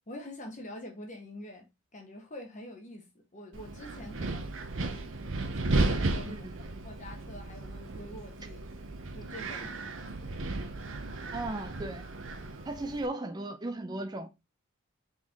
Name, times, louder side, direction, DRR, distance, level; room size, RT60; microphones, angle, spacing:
voice 1, 0.1-3.1 3.3-5.1 5.5-8.6 9.1-9.8, left 1 dB, 35° left, 1.1 m, -46 dB
Wind, 3.5-13.1, right 2 dB, 60° right, 0.7 m, -34 dB
voice 2, 11.3-12.0 12.7-14.3, right 2 dB, 20° right, 0.4 m, -36 dB
4.0 x 3.9 x 2.9 m
head